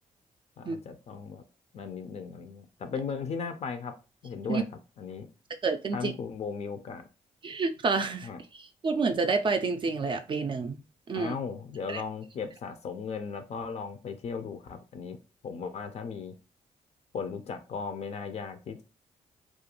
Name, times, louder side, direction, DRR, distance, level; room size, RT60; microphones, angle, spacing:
voice 1, 0.6-1.4 1.7-4.0 4.2-4.6 5.0-5.3 5.9-7.1 8.2-8.4 11.1-15.2 15.4-16.3 17.1-18.8, left 5 dB, 55° left, 0.4 m, -36 dB
voice 2, 5.6-6.1 7.4-8.3 8.5-10.8 11.1-11.3 11.9-12.0, right 4 dB, 40° right, 0.3 m, -29 dB
2.4 x 2.2 x 2.9 m
cardioid pair, 70°, 13 cm